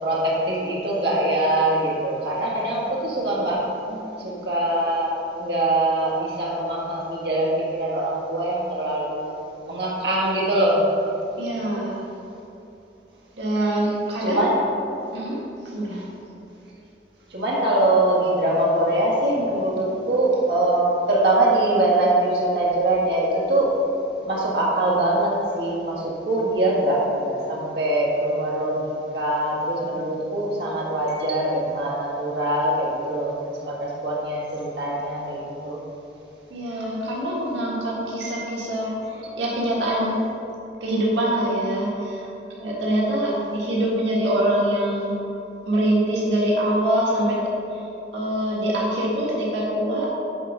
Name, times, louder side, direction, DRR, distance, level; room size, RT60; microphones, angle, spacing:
voice 1, 0.0-9.2 9.7-10.8 14.2-14.6 17.3-23.7 24.3-35.8 38.2-38.4 39.2-39.4 43.1-43.4, right 1 dB, 65° right, -5 dB, 1.6 m, -23 dB
voice 2, 11.4-12.0 13.3-14.5 15.1-16.1 36.5-40.2 40.8-42.3 42.5-45.1 45.6-47.4 47.7-50.1, right 1 dB, 85° right, -5 dB, 1.6 m, -24 dB
9.7 x 3.8 x 5.9 m, 2.7 s
head